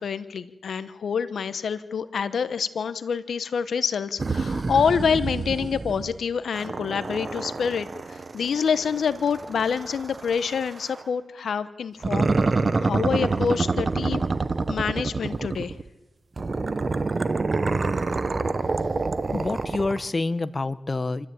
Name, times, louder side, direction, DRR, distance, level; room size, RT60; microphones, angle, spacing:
voice 1, 0.0-12.3 12.8-14.3 14.7-15.7, left 6 dB, 85° left, 13 dB, 1.1 m, -27 dB
sound 1, 4.2-6.2 6.5-11.0 12.0-15.9 16.4-20.1, right 3 dB, 45° right, 1.1 m, -27 dB
voice 2, 19.3-21.3, left 3 dB, 40° left, 14 dB, 0.9 m, -27 dB
28.0 x 13.5 x 8.8 m, 1.0 s
cardioid pair, 55°, 0 cm